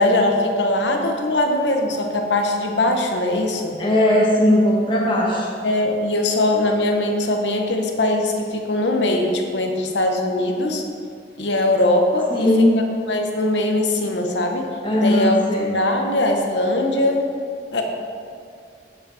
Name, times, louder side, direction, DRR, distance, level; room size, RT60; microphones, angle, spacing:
voice 1, 0.0-3.8 5.6-10.8 11.4-14.7 15.0-15.4 15.7-17.2 17.7-17.8, left 1 dB, 75° left, 3 dB, 0.9 m, -21 dB
voice 2, 3.8-5.5 12.2-12.8 14.8-15.8, left 1 dB, 30° left, -4 dB, 1.4 m, -18 dB
8.6 x 5.3 x 4.8 m, 2.3 s
head